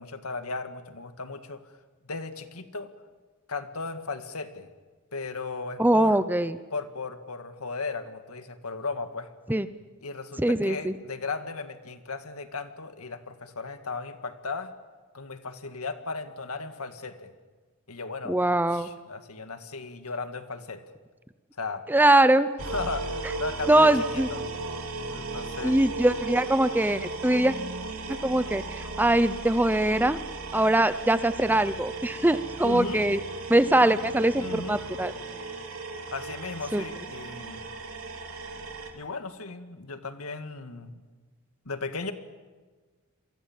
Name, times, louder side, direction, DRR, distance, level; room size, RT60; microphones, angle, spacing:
voice 1, 0.0-1.6 2.1-2.9 3.5-4.7 5.1-6.2 6.7-9.3 10.0-14.7 15.1-17.3 17.9-18.4 18.7-20.8 21.6-21.8 22.7-24.4 25.1-25.8 32.6-33.0 34.4-34.8 36.1-37.7 38.9-41.0 41.7-42.1, left 3 dB, 80° left, 8 dB, 2.0 m, -36 dB
voice 2, 5.8-6.6 9.5-9.7 10.4-10.9 18.3-18.9 21.9-22.5 23.7-24.3 25.6-27.5 28.1-30.2 30.5-33.2 33.5-35.1 36.7-36.8, right 1 dB, 10° right, 13 dB, 0.7 m, -22 dB
sound 1, 22.6-38.9, right 3 dB, 70° right, 3.1 m, -36 dB
28.5 x 23.5 x 7.4 m, 1.4 s
head